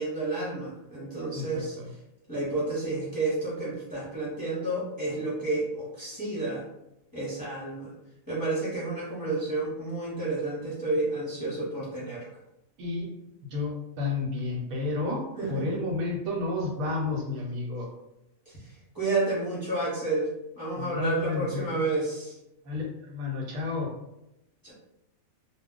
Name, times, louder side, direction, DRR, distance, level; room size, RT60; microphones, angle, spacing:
voice 1, 0.0-1.8 2.3-6.6 7.1-7.9 8.3-12.4 15.4-15.8 18.5-22.4 24.6-24.7, right 2 dB, 20° left, -9 dB, 0.8 m, -30 dB
voice 2, 1.3-1.9 12.8-13.1 13.5-15.2 15.5-17.9 20.8-21.7 22.6-23.9, left 3 dB, 80° right, -1 dB, 1.2 m, -31 dB
2.3 x 2.2 x 3.7 m, 0.88 s
omnidirectional pair, 1.5 m